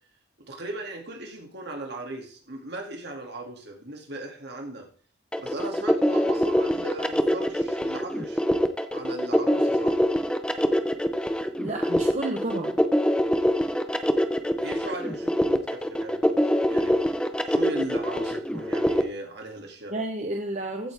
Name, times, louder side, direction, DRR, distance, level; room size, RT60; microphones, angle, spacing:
voice 1, 0.5-4.9 5.4-8.4 8.9-10.0 14.6-17.0 17.5-19.9, right 2 dB, 55° right, 2 dB, 2.5 m, -37 dB
sound 1, 5.3-19.0, equal, 5° left, 0.6 m, -24 dB
voice 2, 11.6-12.8 19.9-20.9, right 2 dB, 35° right, 3 dB, 1.0 m, -31 dB
15.0 x 8.8 x 3.5 m, 0.43 s
head